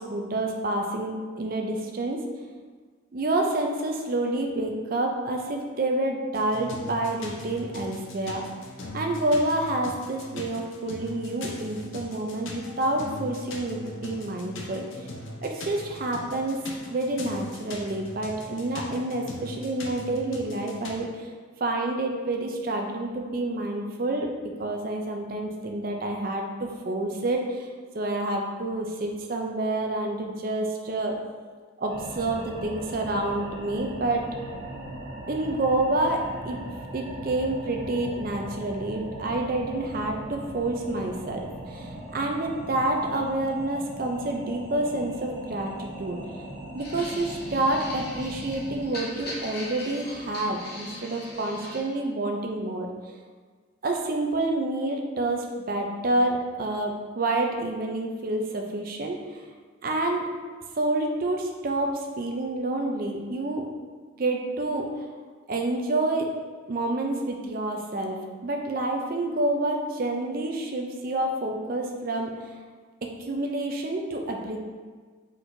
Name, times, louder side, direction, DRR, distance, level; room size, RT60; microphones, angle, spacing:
voice 1, 0.0-2.2 3.1-8.4 8.9-14.8 15.4-16.6 16.9-21.3 21.6-24.3 24.6-27.7 27.9-31.2 31.8-34.3 35.3-36.6 36.9-46.2 46.7-52.9 53.8-59.2 59.8-60.2 60.8-63.6 64.2-64.9 65.5-66.3 66.7-72.3 73.3-74.6, right 2 dB, 45° right, 2 dB, 0.5 m, -28 dB
sound 1, 6.3-21.0, left 2 dB, 70° left, 0.6 m, -40 dB
sound 2, 31.9-48.8, right 1 dB, 85° right, 1.2 m, -39 dB
sound 3, 46.8-51.8, left 1 dB, 50° left, 0.8 m, -40 dB
4.4 x 4.1 x 2.6 m, 1.5 s
head